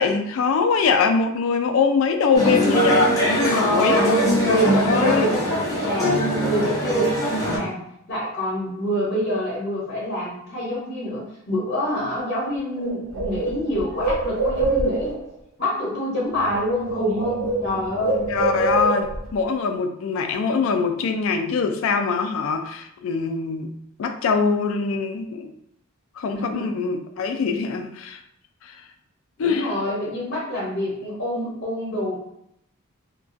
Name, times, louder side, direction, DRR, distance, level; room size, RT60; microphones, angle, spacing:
voice 1, 0.0-4.0 4.5-5.3 18.3-23.7 24.0-25.5 26.2-28.2 28.6-28.8 29.4-29.7, left 5 dB, 65° left, 6 dB, 0.3 m, -23 dB
sound 1, 2.3-7.6, equal, 15° left, 0.5 m, -21 dB
voice 2, 3.5-4.1 4.4-7.8 8.1-15.2 15.6-18.3 26.3-26.7 29.4-32.2, left 1 dB, 50° left, -5 dB, 0.7 m, -26 dB
Bird, 12.4-12.5 12.8-15.3 16.3-16.6 16.8-19.3, right 2 dB, 85° right, 0.6 m, -25 dB
2.3 x 2.2 x 2.5 m, 0.78 s
head